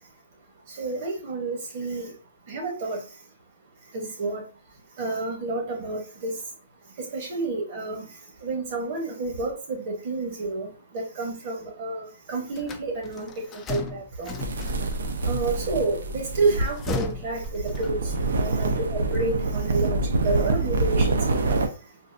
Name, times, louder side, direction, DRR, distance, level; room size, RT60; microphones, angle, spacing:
voice 1, 0.7-2.1 2.5-3.0 3.9-4.5 5.0-6.4 7.0-14.4 15.2-21.4, right 3 dB, 35° right, 2 dB, 1.0 m, -30 dB
sound 1, 12.6-15.1 16.4-18.2, left 4 dB, 15° left, 0.3 m, -35 dB
sound 2, 14.4-21.7, right 3 dB, 75° right, 0.6 m, -26 dB
3.7 x 2.5 x 2.5 m, 0.34 s
hypercardioid pair, 165°, 0 cm